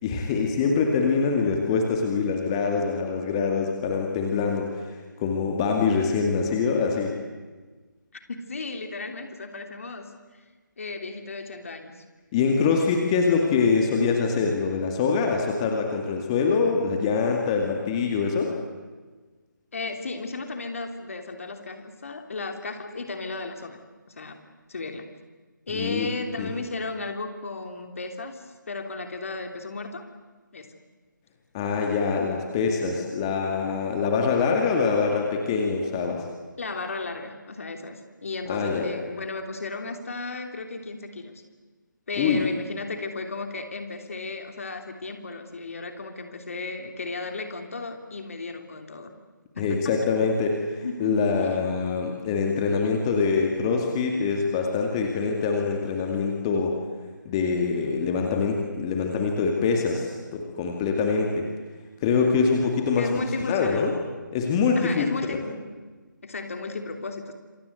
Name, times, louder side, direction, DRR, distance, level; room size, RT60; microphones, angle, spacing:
voice 1, 0.0-7.1 12.3-18.5 25.7-26.1 26.4-26.5 31.5-36.2 38.5-38.9 42.2-42.5 49.6-56.8 57.3-61.5 62.0-63.1 63.5-63.9 64.3-65.0, left 5 dB, 15° left, 2 dB, 2.3 m, -24 dB
voice 2, 8.3-10.4 10.8-11.9 19.7-23.8 24.1-24.4 24.7-25.1 25.7-30.0 30.5-30.7 36.6-41.4 42.1-49.1 49.5-49.9 50.8-51.3 63.0-63.9 64.8-65.6 66.2-67.3, left 3 dB, 45° left, 6 dB, 3.2 m, -34 dB
27.5 x 24.0 x 8.2 m, 1.3 s
figure-of-eight pair, 155°, 11 cm